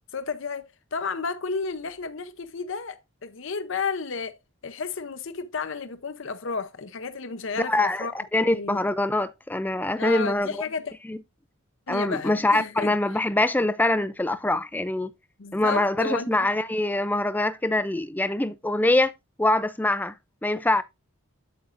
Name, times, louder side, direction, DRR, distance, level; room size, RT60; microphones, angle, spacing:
voice 1, 0.1-4.4 4.6-8.1 8.5-8.9 10.0-10.9 11.9-12.9 15.4-16.5, left 4 dB, 60° left, 0.7 m, -32 dB
voice 2, 7.6-10.6 11.1-11.2 11.9-15.1 15.5-19.1 19.4-20.1 20.4-20.8, left 2 dB, 10° left, 0.4 m, -24 dB
8.8 x 7.8 x 2.5 m
head